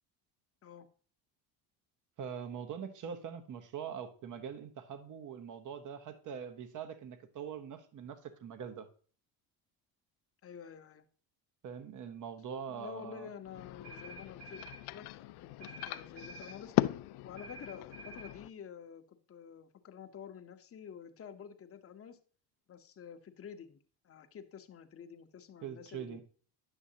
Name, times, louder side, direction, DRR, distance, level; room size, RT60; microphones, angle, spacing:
voice 1, 2.2-8.9 11.6-13.3 25.6-26.2, right 7 dB, 45° right, 9 dB, 1.0 m, -43 dB
voice 2, 10.4-11.0 12.7-14.6 14.9-16.7 17.2-22.2 22.7-23.8 24.0-26.2, left 7 dB, 30° left, 7 dB, 0.9 m, -49 dB
sound 1, 13.4-18.5, left 16 dB, 65° left, 0.5 m, -38 dB
sound 2, 13.8-14.8 15.6-16.6 17.4-18.3, right 3 dB, 90° right, 2.1 m, -50 dB
10.0 x 6.2 x 2.8 m, 0.43 s
supercardioid pair, 100°, 44 cm